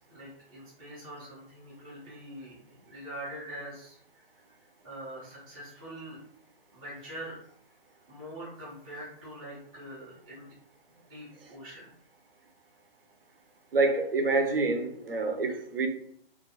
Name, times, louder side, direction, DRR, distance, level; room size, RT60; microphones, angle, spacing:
voice 1, 0.1-4.2 4.8-6.2 6.7-7.4 8.1-10.5 10.9-11.9, right 1 dB, 10° right, -9 dB, 0.4 m, -44 dB
voice 2, 13.7-15.9, right 3 dB, 70° right, 5 dB, 0.6 m, -27 dB
2.4 x 2.3 x 2.8 m, 0.65 s
figure-of-eight pair, 135°, 30 cm